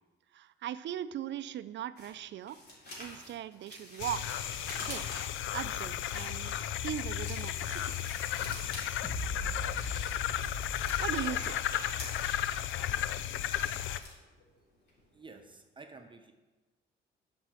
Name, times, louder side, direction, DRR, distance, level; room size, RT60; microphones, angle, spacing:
voice 1, 0.3-2.6 3.0-4.3 4.7-5.0 5.5-8.0 11.0-11.6, right 11 dB, 65° right, 14 dB, 0.5 m, -39 dB
sound 1, 2.0-5.5 5.9-8.9 9.1-10.3 10.7-14.6 14.9-15.1 15.5-15.6, left 1 dB, 55° left, 3.6 m, -47 dB
sound 2, 4.0-14.0, left 11 dB, 80° left, 0.5 m, -34 dB
sound 3, 9.0-12.4, left 1 dB, 35° left, 1.6 m, -41 dB
voice 2, 15.1-16.3, right 3 dB, 25° right, 5 dB, 0.9 m, -51 dB
8.0 x 5.4 x 7.7 m, 1.2 s
cardioid pair, 90°, 20 cm